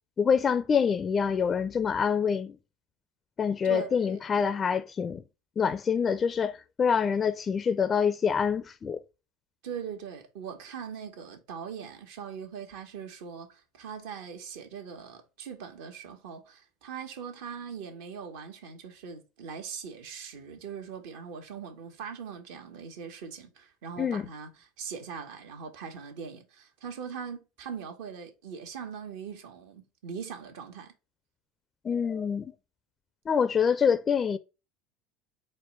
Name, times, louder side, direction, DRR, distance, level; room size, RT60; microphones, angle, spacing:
voice 1, 0.2-2.6 3.4-5.2 5.6-9.0 24.0-24.3 31.8-32.5 33.3-34.4, left 6 dB, 30° left, 0.4 m, -26 dB
voice 2, 3.6-4.2 9.6-30.9, right 7 dB, 75° right, 1.3 m, -41 dB
4.5 x 2.2 x 4.6 m
supercardioid pair, 95°, 0 cm